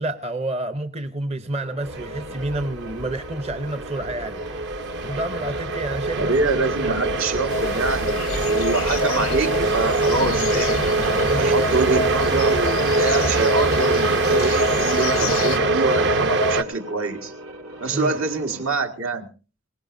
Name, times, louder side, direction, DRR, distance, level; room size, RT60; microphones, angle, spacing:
voice 1, 0.0-7.0 11.3-11.6 17.9-18.2, right 1 dB, 30° right, 0.7 m, -30 dB
sound 1, 1.4-19.0, right 1 dB, 90° right, 5.5 m, -41 dB
sound 2, 1.8-16.6, right 2 dB, 55° right, 0.9 m, -23 dB
voice 2, 6.2-10.8 11.3-17.3 17.8-19.3, right 3 dB, 75° right, 1.8 m, -25 dB
sound 3, 7.5-15.6, left 8 dB, 90° left, 0.8 m, -33 dB
21.5 x 19.0 x 2.6 m
head